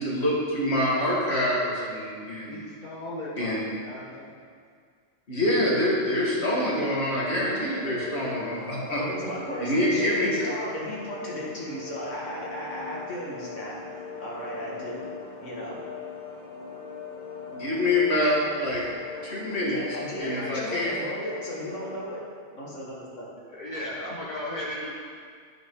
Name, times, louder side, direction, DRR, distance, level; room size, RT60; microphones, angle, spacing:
voice 1, 0.0-2.7 3.4-3.6 5.3-9.0 9.6-10.3 17.5-18.8 19.2-19.8 20.2-20.9, left 1 dB, 60° left, -6 dB, 2.5 m, -26 dB
voice 2, 2.4-4.3 23.5-24.9, left 1 dB, 40° left, -6 dB, 1.4 m, -36 dB
sound 1, 7.2-22.0, left 5 dB, 85° right, 3.1 m, -40 dB
voice 3, 9.0-15.0 15.4-15.8 19.6-22.2 22.5-23.3, equal, 85° left, -5 dB, 2.5 m, -35 dB
10.5 x 8.8 x 3.9 m, 2.1 s
omnidirectional pair, 1.2 m